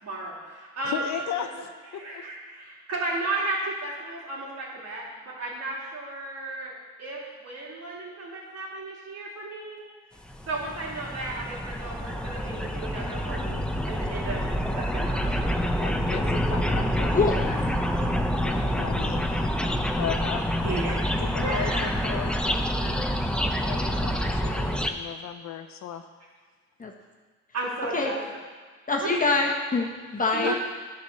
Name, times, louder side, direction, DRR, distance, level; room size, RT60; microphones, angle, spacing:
voice 1, 0.0-1.1 1.5-1.6 1.9-6.7 7.0-9.8 10.5-14.5 14.8-15.6 17.5-17.6 20.6-21.0 21.4-21.9 22.8-22.9 27.5-28.3 29.0-29.2 30.3-30.6, right 2 dB, 55° right, -4 dB, 2.9 m, -34 dB
voice 2, 0.8-2.2 15.8-17.5 17.9-18.1 18.4-19.6 20.0-20.5 21.2-23.0 23.6-26.1 30.4-30.5, left 9 dB, 65° left, 8 dB, 0.8 m, -36 dB
sound 1, 10.3-24.9, equal, 5° left, 0.7 m, -27 dB
voice 3, 17.1-17.4 26.8-26.9 27.9-28.1 28.9-30.5, left 3 dB, 25° left, 0 dB, 1.4 m, -25 dB
10.5 x 4.6 x 6.6 m, 1.5 s
cardioid pair, 90°, 30 cm